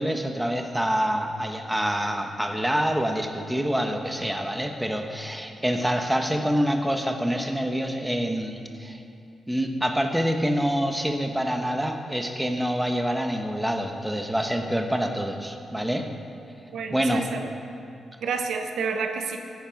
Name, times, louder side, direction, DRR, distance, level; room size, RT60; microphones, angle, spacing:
voice 1, 0.0-9.0 9.5-16.1 16.9-17.3, equal, 5° right, 4 dB, 1.1 m, -26 dB
voice 2, 16.7-17.5 18.2-19.4, right 5 dB, 85° right, 5 dB, 1.0 m, -29 dB
15.5 x 9.5 x 5.2 m, 2.5 s
cardioid pair, 115°, 0 cm